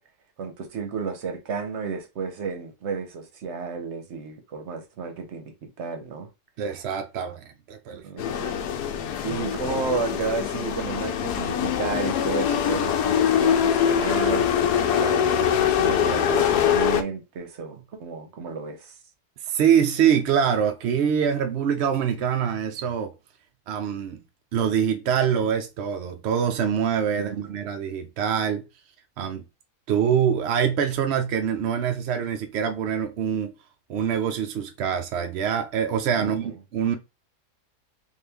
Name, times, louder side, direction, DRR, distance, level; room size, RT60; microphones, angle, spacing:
voice 1, 0.4-6.3 7.9-8.7 9.2-15.3 15.6-18.9 27.1-27.6 36.2-36.5, right 5 dB, 55° right, 0.9 m, -32 dB
voice 2, 6.6-8.0 19.5-23.1 23.7-24.2 24.5-28.6 29.2-29.4 29.9-33.5 33.9-37.0, right 8 dB, 70° right, 0.6 m, -24 dB
sound 1, 8.2-17.0, left 8 dB, 80° left, 1.1 m, -23 dB
3.7 x 2.5 x 3.4 m
omnidirectional pair, 1.7 m